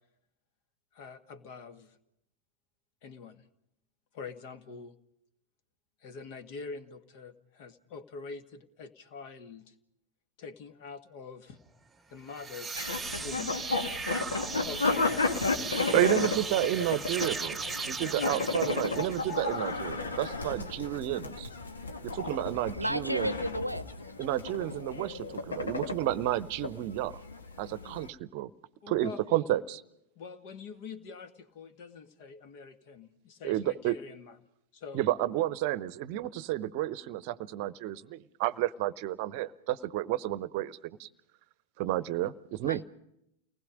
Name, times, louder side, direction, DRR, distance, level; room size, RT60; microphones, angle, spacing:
voice 1, 0.9-2.0 3.0-3.4 4.1-4.9 6.0-9.7 10.4-11.6 12.1-12.9 13.2-13.6 14.6-15.5 18.0-18.4 20.5-20.6 28.8-29.2 30.2-34.3 34.7-35.0, left 5 dB, 45° left, 9 dB, 1.9 m, -45 dB
sound 1, 12.2-19.6, right 4 dB, 10° right, 0.9 m, -37 dB
sound 2, 12.8-28.1, left 3 dB, 70° left, 1.9 m, -33 dB
voice 2, 15.9-21.5 22.1-23.3 24.2-27.2 27.6-28.5 28.9-29.8 33.4-34.0 34.9-41.1 41.8-42.8, right 14 dB, 45° right, 18 dB, 0.8 m, -31 dB
voice 3, 22.7-23.9 42.7-42.8, equal, 90° right, 16 dB, 0.7 m, -32 dB
29.5 x 20.0 x 5.2 m, 0.79 s
figure-of-eight pair, 90°, 0 cm